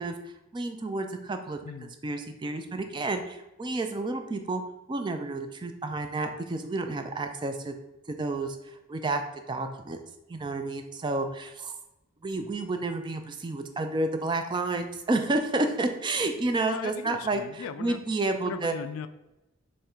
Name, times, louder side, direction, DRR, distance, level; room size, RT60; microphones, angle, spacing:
voice 1, 0.0-1.6 2.0-4.6 4.9-7.7 8.1-9.2 9.5-10.0 10.3-11.8 12.2-18.7, right 2 dB, 20° right, 6 dB, 0.3 m, -30 dB
voice 2, 1.6-1.9 16.7-18.0 18.4-19.1, left 7 dB, 85° left, 12 dB, 0.3 m, -38 dB
3.6 x 3.1 x 4.4 m, 0.94 s
head